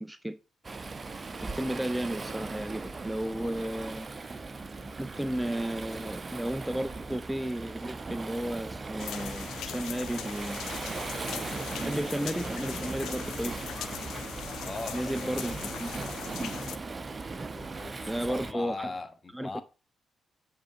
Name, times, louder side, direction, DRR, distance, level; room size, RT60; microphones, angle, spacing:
voice 1, 0.0-0.4 1.4-4.1 5.0-10.6 11.8-13.6 14.9-16.0 16.4-16.6 18.1-18.9 19.3-19.6, right 1 dB, 5° right, 0.5 m, -33 dB
Waves surf, 0.6-18.5, right 3 dB, 35° right, 0.7 m, -38 dB
sound 1, 9.0-16.8, left 11 dB, 75° left, 0.4 m, -40 dB
voice 2, 14.6-15.9 17.5-19.6, left 3 dB, 35° left, 1.2 m, -40 dB
7.8 x 3.9 x 5.1 m
hypercardioid pair, 40°, 0 cm